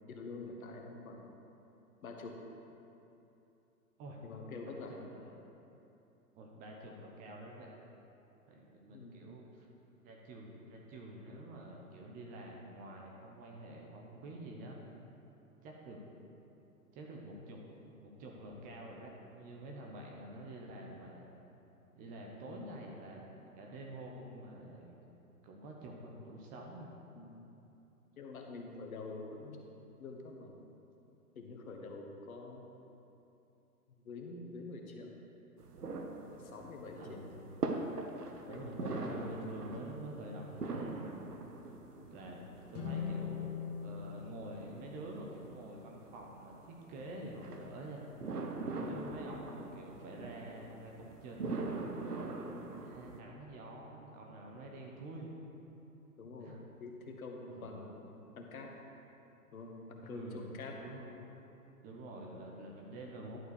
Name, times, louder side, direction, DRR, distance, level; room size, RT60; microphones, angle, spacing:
voice 1, 0.0-1.4 2.0-2.4 4.2-5.1 8.9-9.3 22.5-22.7 27.1-27.4 28.2-29.7 30.0-30.7 31.3-32.7 34.0-35.1 36.2-37.3 38.5-39.3 42.0-42.3 48.7-49.1 52.4-52.8 56.2-58.1 58.3-58.8 59.5-60.8, left 3 dB, 65° left, 2 dB, 1.4 m, -47 dB
voice 2, 4.6-5.3 6.3-7.7 8.5-9.7 10.0-14.8 15.6-16.0 16.9-17.6 18.0-21.3 22.0-25.0 25.4-26.9 37.0-37.4 38.4-41.4 42.1-48.0 48.9-51.7 52.8-55.3 56.4-56.6 57.5-57.9 60.0-61.1 61.8-63.4, right 1 dB, 20° right, 0 dB, 0.8 m, -48 dB
sound 1, 35.6-53.2, right 3 dB, 80° right, 1.0 m, -43 dB
sound 2, 42.7-46.0, left 7 dB, 45° left, 1.6 m, -42 dB
11.0 x 4.7 x 6.5 m, 2.9 s
figure-of-eight pair, 120°, 46 cm